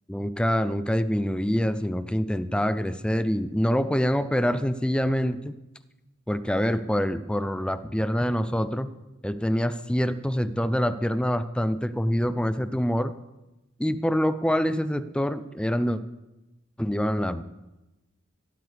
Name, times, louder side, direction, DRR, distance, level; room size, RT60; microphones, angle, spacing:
voice 1, 0.1-5.6 6.3-8.9 9.2-13.1 13.8-16.0 16.8-17.4, equal, 5° left, 12 dB, 0.5 m, -25 dB
16.5 x 13.5 x 3.4 m, 1.0 s
head